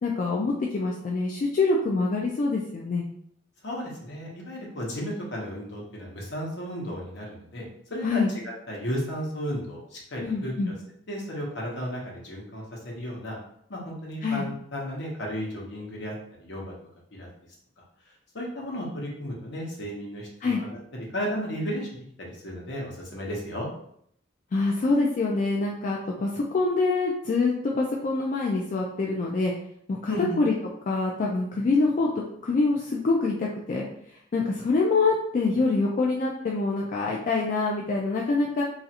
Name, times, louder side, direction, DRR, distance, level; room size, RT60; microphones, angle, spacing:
voice 1, 0.0-3.1 8.0-8.3 10.2-10.7 14.2-14.5 20.4-20.6 24.5-29.5 29.9-30.1 30.4-30.5 30.9-32.1 32.4-33.9 34.3-38.6, left 3 dB, 45° left, -2 dB, 0.3 m, -25 dB
voice 2, 3.6-7.6 7.9-8.2 8.7-10.7 11.1-13.4 13.7-16.1 16.4-16.7 17.1-17.3 18.3-21.9 22.2-23.7 30.1-30.4, equal, 70° left, -2 dB, 0.9 m, -34 dB
3.0 x 2.4 x 2.8 m, 0.69 s
head